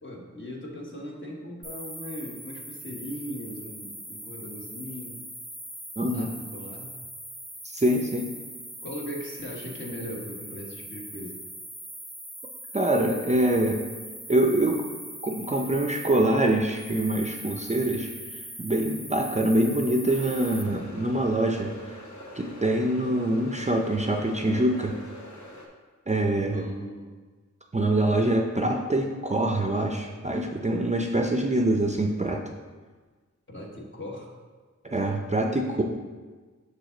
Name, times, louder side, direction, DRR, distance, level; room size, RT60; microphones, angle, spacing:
voice 1, 0.0-5.2 6.1-6.9 8.8-11.4 26.5-27.1 33.5-34.3 35.8-35.9, equal, 40° left, -2 dB, 1.3 m, -39 dB
sound 1, 1.6-20.6, right 1 dB, ahead, 0.8 m, -41 dB
voice 2, 6.0-6.3 7.7-8.3 12.7-13.8 14.3-14.8 15.2-21.7 22.3-25.0 26.1-26.6 27.7-32.4 34.8-35.8, right 1 dB, 25° right, 2 dB, 0.5 m, -25 dB
sound 2, 20.1-25.7, left 1 dB, 70° left, 1.0 m, -44 dB
6.6 x 5.0 x 3.9 m, 1.4 s
wide cardioid pair, 90°, 29 cm